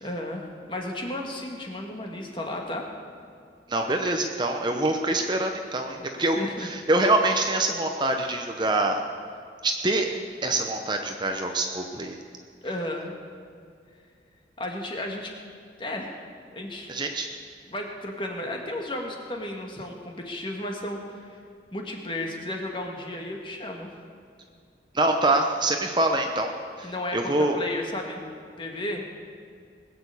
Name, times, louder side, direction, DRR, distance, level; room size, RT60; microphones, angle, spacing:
voice 1, 0.0-2.9 6.2-6.7 12.6-13.1 14.6-15.3 15.8-16.2 16.5-16.9 17.7-21.4 21.7-23.9 26.8-28.2 28.6-29.1, left 1 dB, 25° left, 1 dB, 1.8 m, -33 dB
voice 2, 3.7-9.0 9.6-10.1 10.4-12.2 16.9-17.3 24.9-26.5 26.8-27.6, right 2 dB, 25° right, 4 dB, 0.8 m, -25 dB
20.5 x 7.0 x 8.3 m, 2.3 s
head